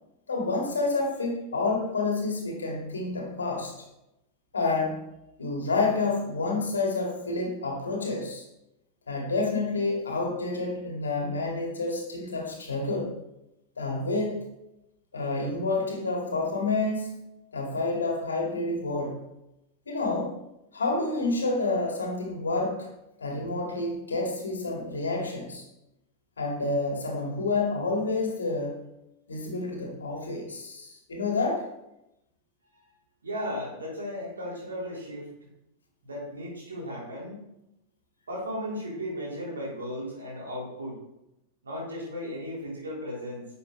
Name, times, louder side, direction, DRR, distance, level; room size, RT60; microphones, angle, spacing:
voice 1, 0.3-3.7 4.5-5.0 5.4-8.4 9.1-13.1 13.8-14.4 15.1-17.1 17.5-19.2 19.9-20.4 20.7-22.9 23.2-25.6 26.4-28.8 29.3-31.7, left 3 dB, 70° left, 0 dB, 2.2 m, -29 dB
voice 2, 33.2-35.3 36.0-37.4 38.3-41.0 41.6-43.5, equal, 70° right, -4 dB, 3.6 m, -35 dB
10.5 x 7.0 x 3.3 m, 0.88 s
figure-of-eight pair, 90°, 0 cm